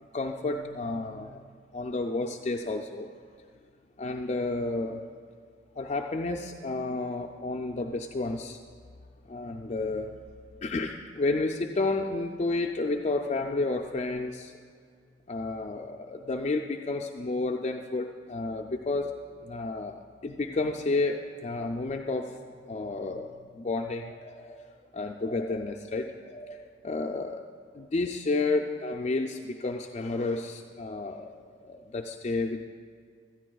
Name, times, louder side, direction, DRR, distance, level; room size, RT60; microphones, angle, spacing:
voice 1, 0.1-1.4 1.7-3.1 4.0-5.0 5.8-8.6 9.3-10.1 10.6-14.5 15.3-22.4 22.7-24.7 24.9-26.6 26.8-27.4 27.7-32.6, left 3 dB, 35° left, 3 dB, 0.4 m, -31 dB
16.0 x 13.0 x 2.3 m, 2.1 s
head